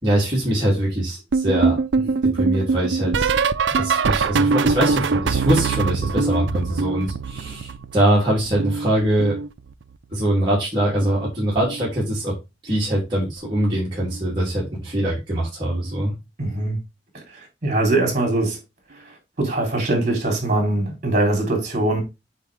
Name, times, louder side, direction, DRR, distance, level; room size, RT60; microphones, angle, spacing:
voice 1, 0.0-3.3 3.7-9.4 10.1-12.3 12.6-16.1, right 1 dB, 25° right, 3.1 m, -23 dB
sound 1, 1.3-8.1 8.4-10.0 10.9-11.3 11.6-11.9 13.4-13.7 14.1-14.3 15.9-16.0, right 4 dB, 85° right, 0.5 m, -23 dB
voice 2, 16.4-16.8 17.3-18.6 19.4-22.0, right 2 dB, 45° right, 3.7 m, -22 dB
8.4 x 4.3 x 3.5 m
head